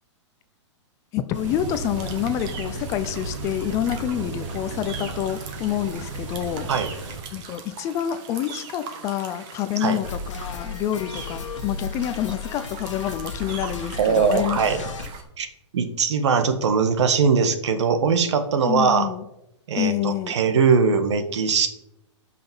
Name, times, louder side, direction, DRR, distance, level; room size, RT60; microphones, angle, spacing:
voice 1, 1.1-6.7 7.3-14.9 18.7-19.2 19.7-20.3, left 11 dB, 20° left, 11 dB, 0.5 m, -27 dB
sound 1, 1.3-7.2, right 3 dB, 90° right, 3.5 m, -34 dB
sound 2, 1.4-15.2, right 6 dB, 25° right, 1.5 m, -41 dB
sound 3, 10.0-15.1, left 4 dB, 85° left, 1.5 m, -34 dB
voice 2, 14.0-14.8 15.4-15.5 15.7-19.1 19.7-21.7, right 5 dB, 65° right, 8 dB, 1.7 m, -21 dB
11.5 x 5.9 x 7.1 m, 0.86 s
hypercardioid pair, 160°, 16 cm